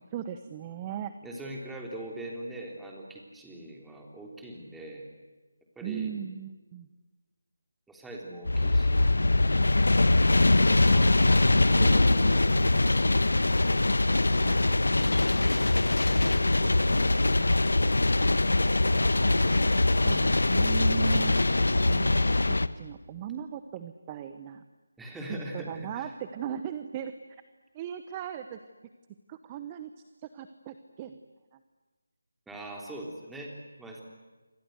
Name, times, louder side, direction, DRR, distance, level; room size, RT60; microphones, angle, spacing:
voice 1, 0.1-1.1 5.8-6.9 14.4-14.9 18.7-24.6 25.3-27.4 27.7-28.6 29.3-29.9 30.2-31.2 31.5-31.6, right 9 dB, 20° right, 10 dB, 1.0 m, -38 dB
voice 2, 1.2-5.0 5.8-6.1 7.9-9.2 10.6-13.0 25.0-26.1 32.5-34.0, right 1 dB, 5° right, -1 dB, 3.6 m, -42 dB
sound 1, 8.5-22.7, left 2 dB, 75° left, 1.2 m, -23 dB
28.0 x 25.5 x 8.1 m, 1.2 s
figure-of-eight pair, 160°, 0 cm